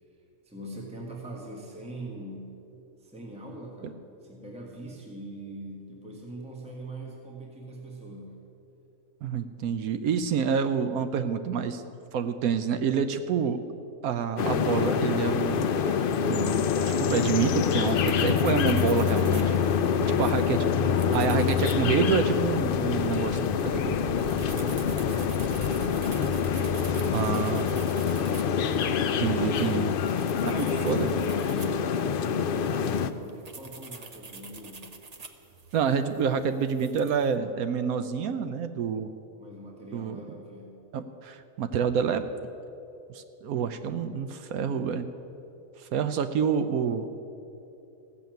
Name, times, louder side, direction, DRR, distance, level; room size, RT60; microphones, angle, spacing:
voice 1, 0.4-2.6 3.0-8.5 19.6-21.8 22.9-24.1 24.9-26.4 26.8-27.9 30.3-34.9 39.4-40.8, right 1 dB, 5° right, -2 dB, 1.5 m, -42 dB
voice 2, 9.2-11.8 12.1-13.6 14.0-19.6 20.2-20.7 21.1-23.4 27.1-27.7 29.2-29.9 30.4-31.1 35.7-39.1 39.9-40.2 40.9-42.3 43.1-45.1 45.8-47.1, right 7 dB, 75° right, 10 dB, 1.1 m, -28 dB
sound 1, 14.4-33.1, left 7 dB, 70° left, 0.5 m, -26 dB
sound 2, 17.9-37.4, right 4 dB, 35° right, 0.7 m, -47 dB
15.0 x 7.0 x 9.1 m, 2.9 s
omnidirectional pair, 1.6 m